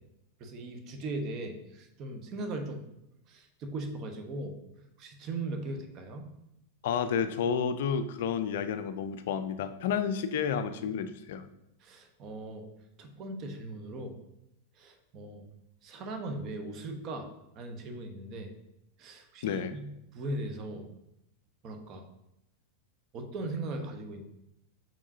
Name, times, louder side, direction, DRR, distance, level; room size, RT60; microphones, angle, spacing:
voice 1, 0.4-2.8 3.3-4.5 5.0-6.3 11.8-12.6 13.0-14.2 14.8-15.5 15.8-17.3 17.5-18.5 19.0-19.9 20.1-20.9 21.6-22.1 23.1-24.2, right 2 dB, 35° right, 5 dB, 1.1 m, -38 dB
voice 2, 6.8-11.5 19.4-19.7, left 7 dB, 55° left, 10 dB, 0.4 m, -31 dB
7.2 x 5.9 x 2.8 m, 0.83 s
figure-of-eight pair, 90°, 0 cm